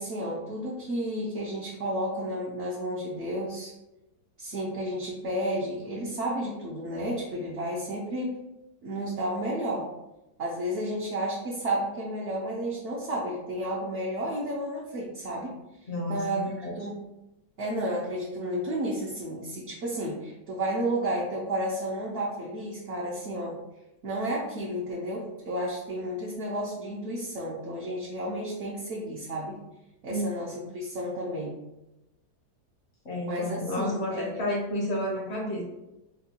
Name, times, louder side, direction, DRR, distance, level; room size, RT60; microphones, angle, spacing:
voice 1, 0.0-3.7 4.4-8.3 8.8-9.9 10.4-15.5 16.1-17.0 17.6-23.6 24.0-29.6 30.0-31.6 33.3-34.4, right 1 dB, 60° right, -5 dB, 0.8 m, -32 dB
voice 2, 15.9-16.7 30.1-30.3 33.0-35.6, left 1 dB, 60° left, -2 dB, 0.7 m, -31 dB
4.3 x 2.2 x 2.8 m, 0.96 s
omnidirectional pair, 1.8 m